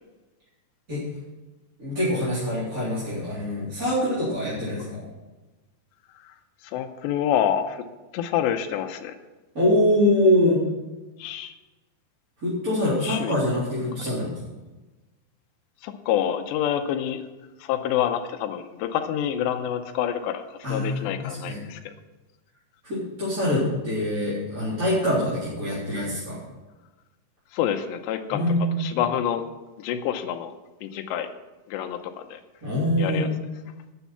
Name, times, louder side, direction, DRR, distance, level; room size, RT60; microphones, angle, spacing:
voice 1, 1.8-5.0 9.5-10.6 12.4-14.4 20.6-21.6 22.8-26.4 28.3-28.9 32.6-33.3, left 1 dB, 20° right, -10 dB, 3.5 m, -24 dB
voice 2, 6.6-7.8 8.1-9.2 11.2-11.5 13.0-13.3 14.0-14.1 15.8-17.2 17.6-21.9 27.5-28.4 28.8-29.5 29.8-30.5 30.8-31.3 31.7-32.4 33.0-33.3, left 10 dB, 90° left, 7 dB, 3.0 m, -27 dB
11.5 x 9.1 x 5.7 m, 1.2 s
omnidirectional pair, 5.0 m